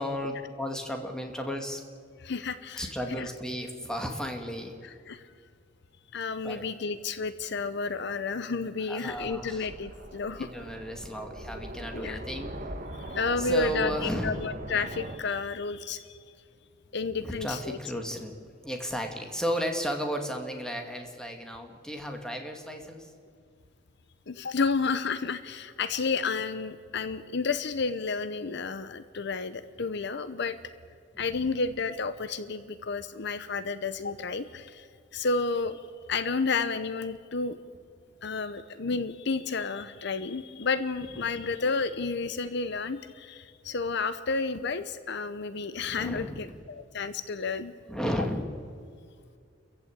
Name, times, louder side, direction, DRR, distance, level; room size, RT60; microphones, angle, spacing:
voice 1, 0.0-1.8 2.8-4.7 6.4-6.6 8.8-9.7 10.4-12.5 13.4-14.4 17.2-23.1 31.1-31.5 41.3-41.4 45.8-46.5 47.9-48.6, equal, 5° left, 3 dB, 2.3 m, -34 dB
voice 2, 2.2-3.3 5.1-5.2 6.1-10.5 11.9-12.2 13.0-13.9 14.2-16.1 16.9-17.8 24.3-30.6 31.2-34.9 35.1-35.8 36.1-37.6 38.2-47.7, left 4 dB, 65° left, 13 dB, 0.8 m, -31 dB
sound 1, 9.1-15.2, right 1 dB, 45° right, 1.9 m, -41 dB
30.0 x 15.0 x 8.7 m, 2.3 s
head